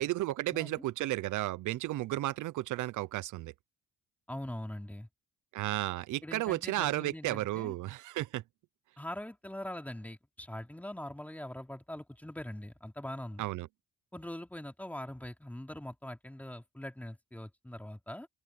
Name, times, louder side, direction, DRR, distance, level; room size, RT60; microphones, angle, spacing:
voice 1, 0.0-3.5 5.5-8.4 13.4-13.7, right 16 dB, 80° right, 0.6 m, -33 dB
voice 2, 0.5-0.8 4.3-5.1 6.2-7.7 9.0-13.5 14.1-18.3, left 1 dB, 5° left, 3.1 m, -42 dB
cardioid pair, 90°, 30 cm